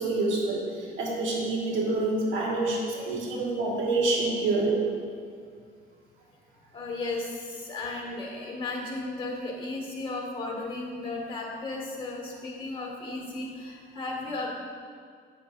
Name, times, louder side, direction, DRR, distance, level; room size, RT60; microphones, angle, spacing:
voice 1, 0.0-5.0, right 2 dB, 80° right, -3 dB, 1.8 m, -27 dB
voice 2, 6.7-14.5, left 2 dB, 25° left, -1 dB, 1.8 m, -35 dB
8.8 x 7.0 x 2.6 m, 2.1 s
cardioid pair, 110°, 20 cm